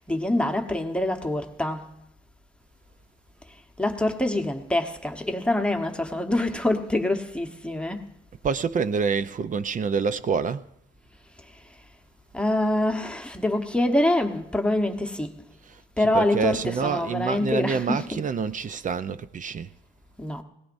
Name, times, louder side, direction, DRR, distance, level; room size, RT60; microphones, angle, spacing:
voice 1, 0.1-1.9 3.8-8.0 12.3-15.3 16.0-18.2 20.2-20.4, left 1 dB, 5° left, 1.1 m, -25 dB
voice 2, 8.4-10.6 15.7-19.7, right 5 dB, 40° right, 0.6 m, -27 dB
20.0 x 17.5 x 2.6 m
cardioid pair, 90°, 20 cm